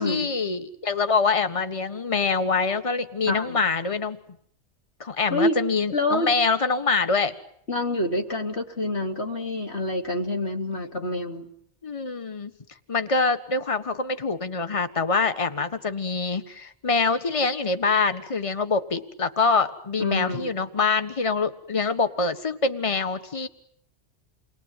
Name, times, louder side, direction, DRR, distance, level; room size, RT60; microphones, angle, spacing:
voice 1, 0.0-4.2 5.0-7.4 11.8-12.5 12.9-23.5, left 4 dB, 30° left, 9 dB, 1.6 m, -25 dB
voice 2, 3.3-3.6 5.3-5.6 5.9-6.3 7.7-11.5 20.0-20.5, left 1 dB, 65° left, 3 dB, 3.7 m, -27 dB
29.5 x 22.0 x 9.1 m, 0.68 s
omnidirectional pair, 1.2 m